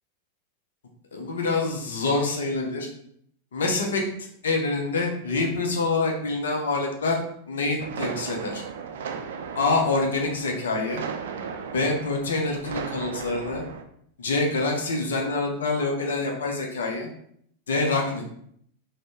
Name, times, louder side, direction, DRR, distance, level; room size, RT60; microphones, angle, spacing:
voice 1, 1.1-2.9 3.5-7.2 7.5-8.6 9.5-11.0 11.7-13.6 14.2-17.1 17.7-18.2, left 3 dB, 65° left, 1 dB, 0.6 m, -26 dB
sound 1, 7.8-13.8, right 6 dB, 60° right, 0.3 m, -36 dB
4.0 x 2.1 x 3.0 m, 0.67 s
figure-of-eight pair, 90°, 0 cm